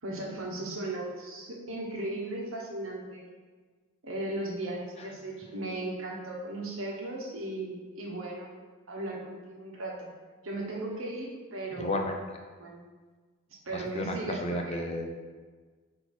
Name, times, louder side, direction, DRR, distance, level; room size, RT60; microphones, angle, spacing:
voice 1, 0.0-3.3 4.0-8.5 8.9-10.1 10.4-12.0 12.6-12.9 13.5-14.8, right 2 dB, 70° right, -2 dB, 1.2 m, -36 dB
voice 2, 11.8-12.4 13.7-15.1, left 1 dB, 30° left, 3 dB, 0.5 m, -33 dB
8.0 x 2.8 x 4.4 m, 1.4 s
head